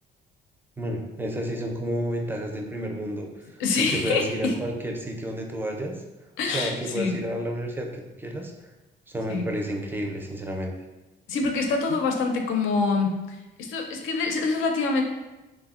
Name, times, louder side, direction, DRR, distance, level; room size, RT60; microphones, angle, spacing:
voice 1, 0.8-3.6 3.9-6.0 6.5-8.7 9.1-10.7, right 1 dB, 10° right, 2 dB, 0.4 m, -31 dB
voice 2, 3.6-4.5 6.4-7.2 9.3-9.5 11.3-13.1 13.6-15.0, left 4 dB, 85° left, 3 dB, 0.5 m, -25 dB
3.4 x 2.1 x 2.3 m, 1.1 s
cardioid pair, 90°, 20 cm